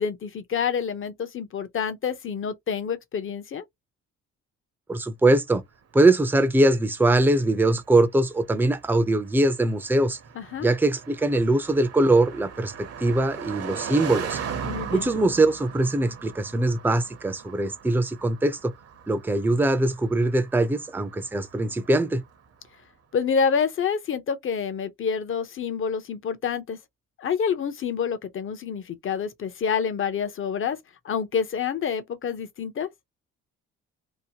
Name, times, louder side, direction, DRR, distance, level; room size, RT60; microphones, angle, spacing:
voice 1, 0.0-3.6 10.3-10.7 14.6-15.1 23.1-26.8 27.2-30.8 31.0-32.9, left 6 dB, 45° left, 0.7 m, -27 dB
voice 2, 4.9-5.6 5.9-10.2 10.6-12.7 13.0-14.4 14.9-18.7 19.1-22.2, right 2 dB, 5° right, 0.5 m, -22 dB
Car passing by, 6.0-22.5, right 7 dB, 55° right, 0.7 m, -39 dB
2.8 x 2.1 x 2.8 m
cardioid pair, 90°, 30 cm